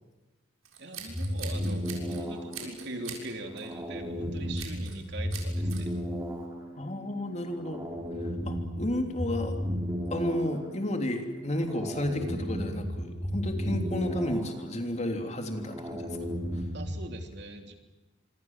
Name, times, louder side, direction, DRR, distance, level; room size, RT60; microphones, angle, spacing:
Scissors, 0.7-2.2 2.5-3.2 3.6-3.8 4.6-5.0 5.3-5.8, right 7 dB, 90° right, 6.6 m, -42 dB
voice 1, 0.8-5.9 16.7-17.7, right 1 dB, 55° right, 5 dB, 3.4 m, -41 dB
sound 1, 1.1-17.1, equal, 15° right, 4.4 m, -35 dB
voice 2, 6.8-7.8 8.2-9.5 10.1-16.2, left 1 dB, 35° left, 5 dB, 3.3 m, -32 dB
26.5 x 25.5 x 7.5 m, 1.1 s
head